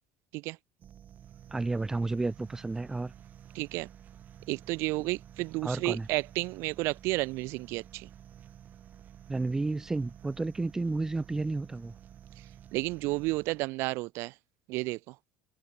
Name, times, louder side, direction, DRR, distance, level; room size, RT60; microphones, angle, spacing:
sound 1, 0.8-13.8, right 10 dB, 35° right, 5.7 m, -52 dB
voice 1, 1.5-3.1 5.6-6.1 9.3-11.9, right 3 dB, 10° right, 1.1 m, -31 dB
voice 2, 3.5-3.9 4.5-8.1 12.7-14.3 14.7-15.1, right 22 dB, 60° right, 0.6 m, -32 dB
cardioid pair, 140°, 5 cm